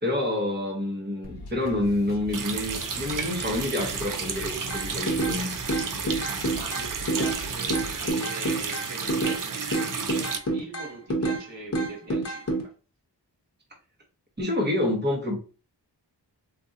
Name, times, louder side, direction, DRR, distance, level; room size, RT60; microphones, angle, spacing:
voice 1, 0.0-5.6 14.4-15.3, left 1 dB, 25° right, 1.0 m, -28 dB
sound 1, 1.2-8.1, left 2 dB, 65° left, 0.9 m, -42 dB
Water tap faucet, 2.3-10.4, right 5 dB, 50° right, 0.5 m, -32 dB
sound 2, 4.7-5.4 5.7-7.4 7.7-9.4 9.7-11.4 11.7-12.6, right 2 dB, 35° left, 0.9 m, -27 dB
voice 2, 6.5-12.7, right 2 dB, 85° right, 1.3 m, -41 dB
3.7 x 2.6 x 2.6 m
wide cardioid pair, 70°, 42 cm